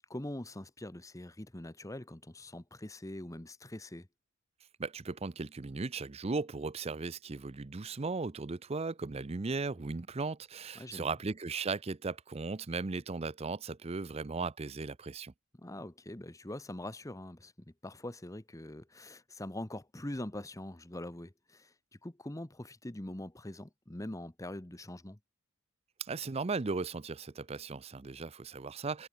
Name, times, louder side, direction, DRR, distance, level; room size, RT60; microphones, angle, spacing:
voice 1, 0.1-4.1 10.7-11.1 15.6-21.7 22.0-25.2, left 1 dB, 15° left, 1.0 m, -43 dB
voice 2, 4.8-15.3 26.0-29.1, right 4 dB, 30° right, 0.5 m, -37 dB
head